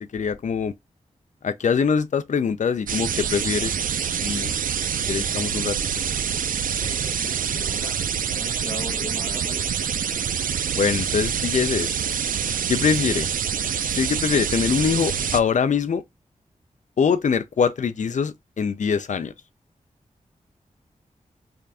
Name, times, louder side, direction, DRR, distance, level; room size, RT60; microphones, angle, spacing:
voice 1, 0.1-0.7 1.4-3.7 4.2-4.5 5.1-5.8 10.7-11.9 12.7-13.3 13.9-16.0 17.0-19.3, left 6 dB, 65° left, 0.5 m, -23 dB
sound 1, 2.9-15.4, right 8 dB, 85° right, 0.4 m, -26 dB
voice 2, 6.8-9.7, left 2 dB, 35° left, 0.9 m, -39 dB
3.5 x 2.6 x 3.3 m
wide cardioid pair, 75°, 14 cm